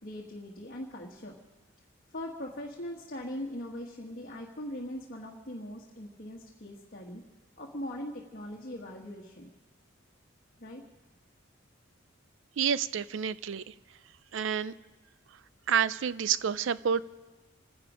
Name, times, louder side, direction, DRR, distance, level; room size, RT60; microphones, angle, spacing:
voice 1, 0.0-1.4 2.1-7.2 7.6-9.5 10.6-10.8, left 1 dB, 45° left, -1 dB, 1.5 m, -40 dB
voice 2, 12.6-13.7 14.3-14.7 15.7-17.0, right 7 dB, 65° right, 17 dB, 0.5 m, -29 dB
26.0 x 10.5 x 5.0 m, 1.2 s
head